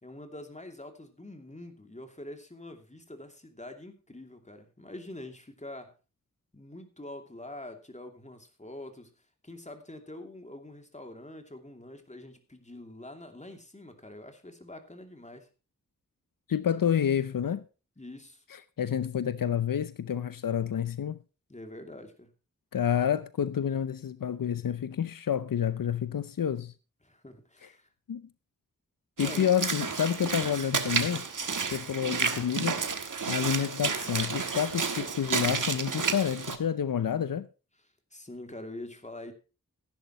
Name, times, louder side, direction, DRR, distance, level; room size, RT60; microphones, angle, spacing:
voice 1, 0.0-5.9 6.5-9.1 9.4-15.5 18.0-18.4 21.5-22.3 27.0-27.9 29.2-29.5 38.1-39.3, left 1 dB, 20° left, 2.7 m, -45 dB
voice 2, 16.5-17.6 18.8-21.2 22.7-26.7 28.1-28.3 29.2-31.3 31.7-32.8 33.3-37.5, left 8 dB, 85° left, 0.7 m, -29 dB
Walk footsteps / Splash splatter, 29.2-36.6, right 5 dB, 70° right, 1.4 m, -31 dB
15.5 x 10.5 x 3.0 m
wide cardioid pair, 60°, 33 cm